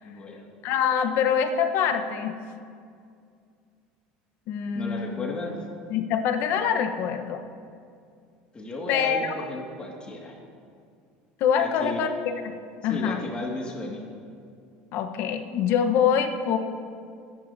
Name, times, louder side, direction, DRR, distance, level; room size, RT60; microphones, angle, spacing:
voice 1, 0.0-0.5 4.7-5.7 8.5-10.4 11.6-12.0 12.9-14.0, left 2 dB, 25° left, -1 dB, 2.0 m, -34 dB
voice 2, 0.6-2.3 4.5-5.2 5.9-7.4 8.9-9.3 11.4-12.5 12.8-13.2 14.9-16.6, left 8 dB, 60° left, 6 dB, 1.0 m, -25 dB
21.0 x 10.0 x 2.8 m, 2.3 s
supercardioid pair, 110°, 4 cm